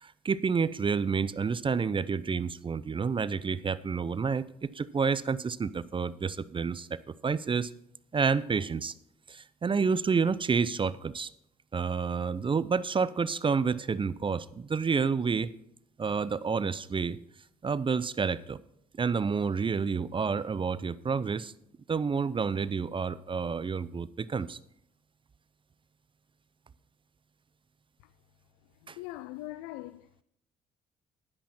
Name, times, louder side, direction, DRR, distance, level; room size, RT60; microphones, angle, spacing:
voice 1, 0.0-7.7 8.1-8.9 9.3-11.3 11.7-15.5 16.0-17.2 17.6-18.6 19.0-21.5 21.9-24.6 28.9-29.0, right 5 dB, 30° right, 0.6 m, -29 dB
voice 2, 28.8-30.2, left 16 dB, 85° left, 0.4 m, -42 dB
11.0 x 10.0 x 4.3 m
supercardioid pair, 60°, 17 cm